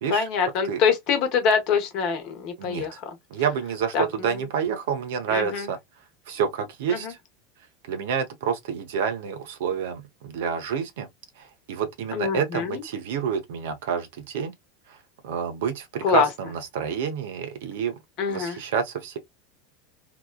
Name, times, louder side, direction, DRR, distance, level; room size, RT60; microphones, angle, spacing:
voice 1, 0.1-2.9 3.9-4.1 5.3-5.7 6.9-7.1 12.1-12.8 16.0-16.3 18.2-18.6, left 6 dB, 50° left, 1.0 m, -24 dB
voice 2, 2.6-3.0 3.3-5.8 6.3-7.2 7.9-11.1 11.7-14.5 15.2-17.9 18.3-19.2, right 7 dB, 65° right, 0.7 m, -28 dB
2.9 x 2.2 x 2.2 m
figure-of-eight pair, 80°, 0 cm